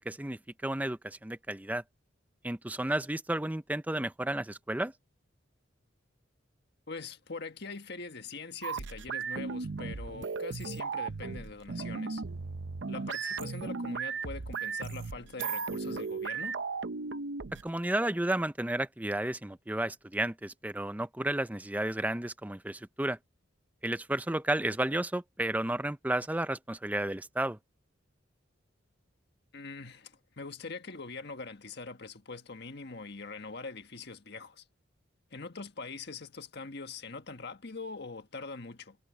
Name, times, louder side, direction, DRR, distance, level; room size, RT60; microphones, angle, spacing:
voice 1, 0.0-1.8 2.4-4.9 17.6-23.2 23.8-27.6, right 1 dB, 10° right, 0.5 m, -32 dB
voice 2, 6.9-12.2 12.9-16.6 29.5-34.6 35.3-39.0, left 4 dB, 55° left, 1.6 m, -43 dB
sound 1, 8.6-17.7, right 4 dB, 65° right, 0.7 m, -36 dB
head